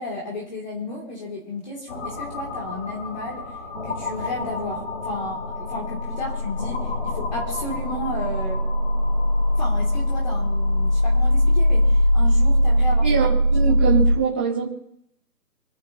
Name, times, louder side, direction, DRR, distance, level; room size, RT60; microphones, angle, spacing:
voice 1, 0.0-3.5 3.8-8.6 9.6-13.1, left 2 dB, 25° left, -3 dB, 3.0 m, -33 dB
sound 1, 1.9-14.2, equal, 50° left, 4.2 m, -22 dB
voice 2, 13.0-14.7, right 6 dB, 10° right, -7 dB, 1.1 m, -23 dB
28.0 x 11.0 x 3.0 m, 0.77 s
figure-of-eight pair, 165°, 47 cm